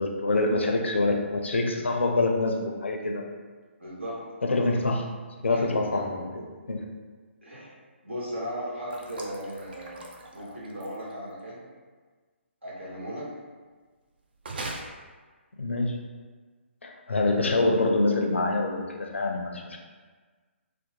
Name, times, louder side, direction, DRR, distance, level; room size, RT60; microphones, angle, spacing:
voice 1, 0.0-3.2 4.4-5.1 5.4-6.4 6.7-6.8 15.6-16.0 16.8-19.8, left 2 dB, 65° left, 2 dB, 0.4 m, -25 dB
voice 2, 3.8-4.2 5.5-6.0 7.4-7.7 8.0-11.6 12.6-13.3, equal, 70° right, -7 dB, 1.2 m, -37 dB
sound 1, 8.9-11.1 14.4-14.8, right 2 dB, 50° right, 0.4 m, -40 dB
2.8 x 2.0 x 2.9 m, 1.4 s
figure-of-eight pair, 135°, 7 cm